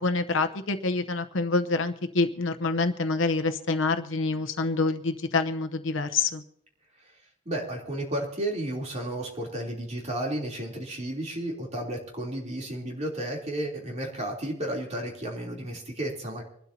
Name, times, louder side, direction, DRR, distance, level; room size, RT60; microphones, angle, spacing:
voice 1, 0.0-6.4, left 3 dB, 75° left, 9 dB, 0.9 m, -26 dB
voice 2, 7.4-16.4, right 1 dB, 35° right, -1 dB, 3.3 m, -32 dB
25.5 x 12.5 x 2.8 m, 0.71 s
head